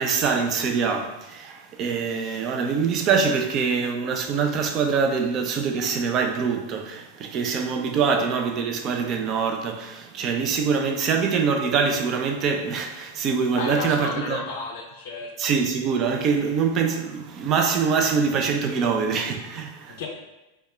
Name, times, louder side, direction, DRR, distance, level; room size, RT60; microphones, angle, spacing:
voice 1, 0.0-14.4 15.4-20.0, right 5 dB, 35° right, 0.3 m, -24 dB
voice 2, 13.6-15.3 20.0-20.1, left 3 dB, 50° left, 0.4 m, -32 dB
3.4 x 2.1 x 2.4 m
figure-of-eight pair, 90°, 0 cm